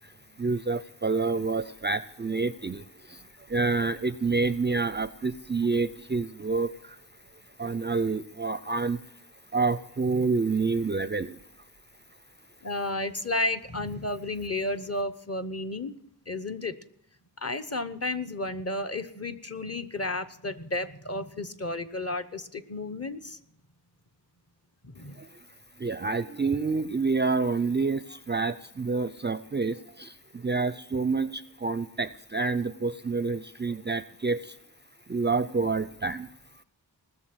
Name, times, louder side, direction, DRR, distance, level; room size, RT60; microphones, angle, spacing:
voice 1, 0.4-7.0 7.6-9.0 9.5-11.4 25.2-25.3 25.8-34.6 35.1-36.3, right 4 dB, 25° right, 15 dB, 0.4 m, -28 dB
voice 2, 12.6-16.0 16.3-16.8 17.4-23.4 24.8-25.2, left 2 dB, 35° left, 9 dB, 0.9 m, -32 dB
19.5 x 6.7 x 7.9 m, 0.73 s
wide cardioid pair, 70°, 42 cm